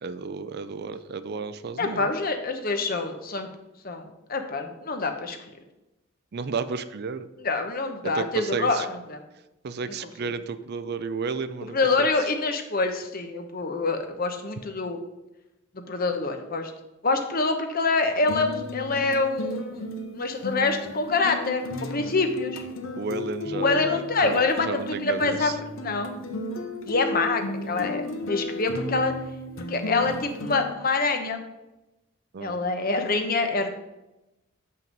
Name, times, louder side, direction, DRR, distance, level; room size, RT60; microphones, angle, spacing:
voice 1, 0.0-2.1 6.3-7.3 8.0-8.9 9.6-12.1 22.0-22.1 23.0-23.8 24.2-25.5 32.3-32.6, right 4 dB, 50° right, 12 dB, 0.4 m, -32 dB
voice 2, 1.8-3.5 3.8-5.4 7.4-9.2 9.8-10.3 11.7-15.0 15.7-16.7 17.0-19.8 20.1-22.6 23.5-26.2 26.8-29.1 29.7-31.4 32.4-33.7, left 3 dB, 45° left, 6 dB, 0.9 m, -26 dB
sound 1, 18.2-30.7, left 1 dB, 65° left, 0.9 m, -34 dB
7.6 x 5.7 x 5.2 m, 0.96 s
head